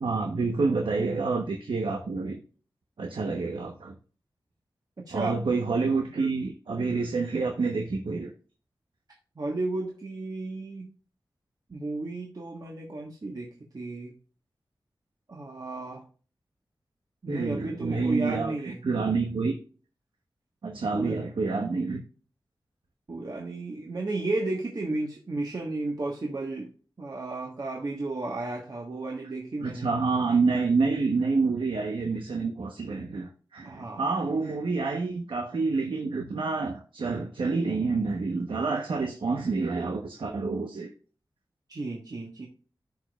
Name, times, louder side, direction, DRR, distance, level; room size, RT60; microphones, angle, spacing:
voice 1, 0.0-2.4 3.0-3.9 5.1-8.3 17.3-19.5 20.6-22.0 29.6-40.9, right 4 dB, 85° right, 3 dB, 1.0 m, -28 dB
voice 2, 5.1-5.4 9.4-10.9 11.7-13.5 13.7-14.1 15.3-16.1 17.2-18.8 20.9-21.2 23.1-26.7 27.0-29.9 33.6-34.1 41.7-42.5, right 2 dB, 50° right, -1 dB, 1.4 m, -33 dB
14.5 x 5.1 x 2.4 m, 0.40 s
wide cardioid pair, 90°, 8 cm